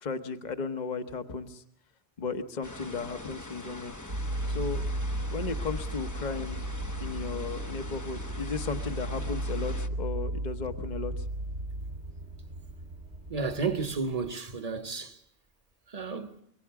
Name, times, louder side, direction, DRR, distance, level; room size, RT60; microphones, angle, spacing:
voice 1, 0.0-1.6 2.2-3.9 4.5-4.9 5.3-6.6 7.0-11.2, left 4 dB, 45° left, 1.2 m, -35 dB
sound 1, 2.6-9.9, left 2 dB, 20° left, 0.8 m, -42 dB
sound 2, 4.1-14.3, right 1 dB, 80° right, 1.9 m, -35 dB
voice 2, 13.3-15.2 15.9-16.4, right 4 dB, 35° right, 1.4 m, -32 dB
26.5 x 23.0 x 4.8 m
omnidirectional pair, 1.1 m